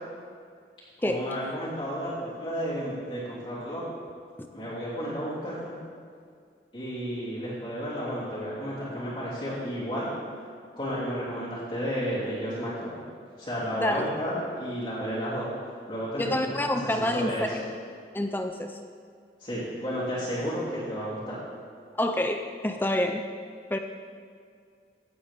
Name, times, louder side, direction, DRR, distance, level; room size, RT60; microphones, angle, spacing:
voice 1, 1.0-3.8 4.5-5.8 6.7-10.1 10.7-12.9 13.4-15.5 15.9-17.5 19.4-21.4, equal, 30° left, -12 dB, 3.3 m, -32 dB
voice 2, 13.7-14.1 16.2-17.6 18.1-18.8 22.0-23.2 23.7-23.8, left 1 dB, 10° left, 5 dB, 0.5 m, -27 dB
16.5 x 8.6 x 3.7 m, 2.1 s
head